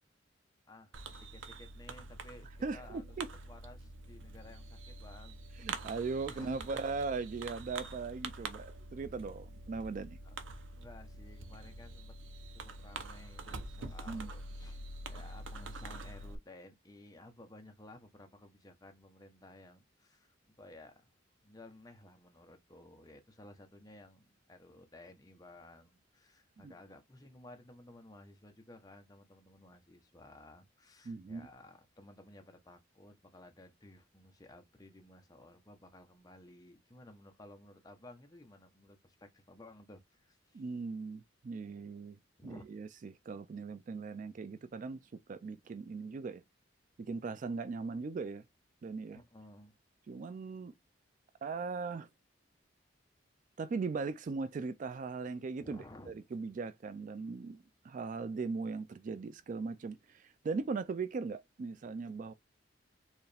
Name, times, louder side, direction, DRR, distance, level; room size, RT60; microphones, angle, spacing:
voice 1, 0.7-3.0 3.5-5.8 6.3-6.8 10.2-10.5 10.7-12.1 12.5-21.1 21.4-40.6 42.4-42.6 49.1-49.7 55.6-56.1, left 1 dB, 20° left, 0.9 m, -56 dB
Fireworks, 0.9-16.4, right 3 dB, 85° right, 0.7 m, -46 dB
voice 2, 2.6-3.3 5.6-10.2 14.1-14.3 26.6-26.7 31.1-31.5 40.5-42.2 42.4-46.4 47.0-48.4 48.8-49.2 50.1-50.7 51.4-52.1 53.6-62.3, right 4 dB, 45° right, 0.3 m, -39 dB
4.6 x 3.2 x 3.3 m
head